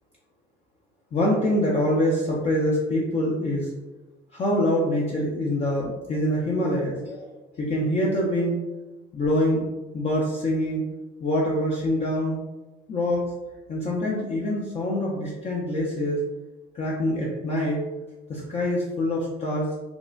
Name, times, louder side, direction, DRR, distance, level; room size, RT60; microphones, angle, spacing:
voice 1, 1.1-3.7 4.3-7.3 7.6-8.6 9.1-9.7 9.9-10.8 11.2-12.4 12.9-13.2 13.7-16.2 16.7-17.8 18.3-19.7, left 1 dB, 40° left, -4 dB, 0.5 m, -25 dB
3.7 x 2.0 x 2.4 m, 1.1 s
cardioid pair, 110°, 17 cm